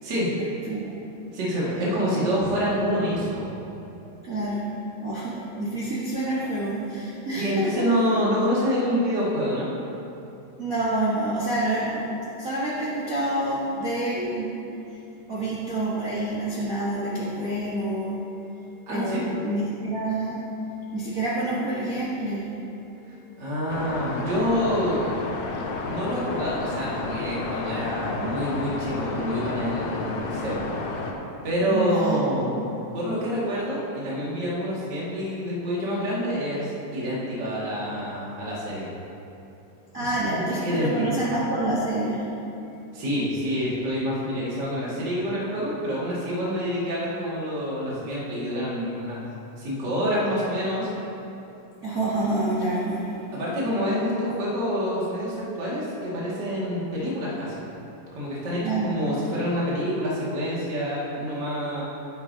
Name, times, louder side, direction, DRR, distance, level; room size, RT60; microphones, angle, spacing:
voice 1, 0.3-1.0 2.0-2.3 4.2-4.7 5.0-7.9 10.6-12.1 12.4-14.5 15.3-18.2 18.9-20.4 20.9-22.5 31.7-32.3 39.9-42.3 51.8-53.3 58.6-58.9, right 1 dB, 90° right, -8 dB, 0.7 m, -28 dB
voice 2, 1.3-3.4 7.3-9.7 18.9-19.3 23.4-25.0 25.8-30.6 31.4-32.5 32.9-38.9 40.0-41.2 42.9-49.2 49.6-50.9 53.3-57.6 58.1-61.8, equal, 35° right, -7 dB, 2.3 m, -27 dB
sound 1, 23.7-31.1, left 3 dB, 75° left, 2.1 m, -31 dB
11.0 x 10.5 x 2.8 m, 2.8 s
omnidirectional pair, 3.9 m